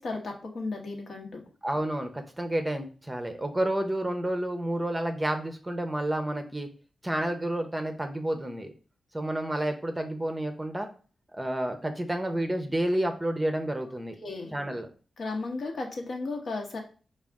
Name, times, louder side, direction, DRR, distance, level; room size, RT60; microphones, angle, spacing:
voice 1, 0.0-1.4 14.2-14.5 15.2-16.8, left 3 dB, 70° left, 1 dB, 1.1 m, -34 dB
voice 2, 1.6-6.7 7.0-8.7 9.1-10.9 11.3-14.1 14.5-14.9, right 1 dB, 15° right, 6 dB, 0.6 m, -30 dB
4.9 x 2.3 x 3.5 m, 0.37 s
wide cardioid pair, 100°, 0 cm